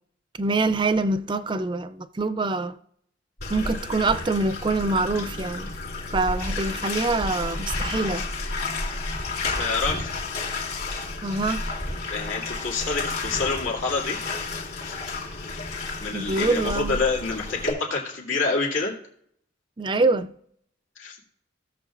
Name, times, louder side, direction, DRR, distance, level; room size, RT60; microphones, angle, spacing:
voice 1, 0.4-2.8 3.5-5.7 6.1-8.3 11.2-11.6 16.1-17.0 19.8-20.3, right 3 dB, 25° right, 0.4 m, -25 dB
Bathtub (filling or washing), 3.4-17.7, left 3 dB, 55° left, 2.6 m, -31 dB
voice 2, 9.6-10.1 12.1-14.2 14.8-14.9 16.0-19.0 21.0-21.2, left 4 dB, 85° left, 2.4 m, -27 dB
16.5 x 7.2 x 2.5 m
head